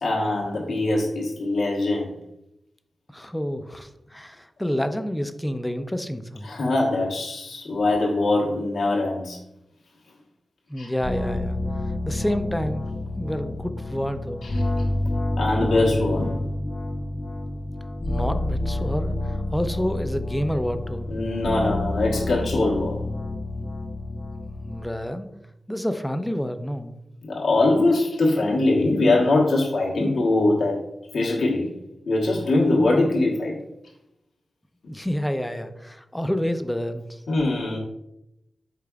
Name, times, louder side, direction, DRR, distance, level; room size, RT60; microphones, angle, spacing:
voice 1, 0.0-2.1 6.4-9.4 10.8-10.9 14.4-14.6 15.4-16.3 21.1-23.0 27.2-30.8 31.1-31.7 32.1-33.5 37.3-37.8, left 2 dB, 85° left, -3 dB, 1.2 m, -22 dB
voice 2, 3.1-6.5 10.7-11.6 12.0-12.8 13.2-14.4 18.1-21.1 24.7-25.3 25.7-27.0 34.9-37.2, equal, 10° left, 9 dB, 0.4 m, -28 dB
sound 1, 11.0-24.8, left 1 dB, 50° left, 0.6 m, -29 dB
5.0 x 4.5 x 2.3 m, 0.85 s
cardioid pair, 50°, 0 cm